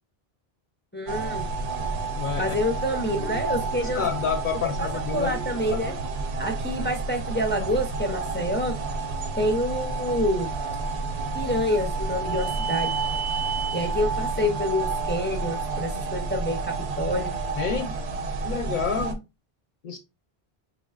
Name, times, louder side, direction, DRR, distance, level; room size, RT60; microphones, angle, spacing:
voice 1, 0.9-1.5 2.4-4.0 4.8-5.9 6.4-8.8 9.4-10.5 11.3-13.0 13.7-17.3, left 1 dB, 15° left, 0.4 m, -27 dB
sound 1, 1.1-19.1, right 4 dB, 90° right, 0.9 m, -30 dB
voice 2, 2.2-2.6 3.9-5.3 17.6-17.9 18.4-19.2 19.8-20.0, left 6 dB, 55° left, 0.6 m, -28 dB
sound 2, 3.1-4.1 5.2-6.1, right 1 dB, 25° right, 0.6 m, -43 dB
3.6 x 3.1 x 2.3 m
omnidirectional pair, 1.1 m